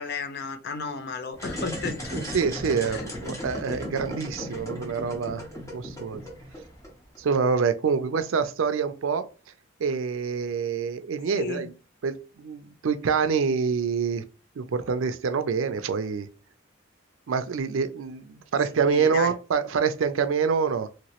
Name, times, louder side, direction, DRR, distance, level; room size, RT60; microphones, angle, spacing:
voice 1, 0.0-2.3 2.9-3.0 11.3-11.7 18.9-19.3, left 5 dB, 55° left, 0.5 m, -34 dB
sound 1, 1.3-7.2, equal, 15° left, 0.9 m, -36 dB
voice 2, 2.1-5.5 5.7-6.2 7.2-9.3 9.8-11.7 12.0-14.2 14.6-16.3 17.3-20.9, right 5 dB, 80° right, 0.4 m, -26 dB
3.0 x 2.9 x 2.9 m
head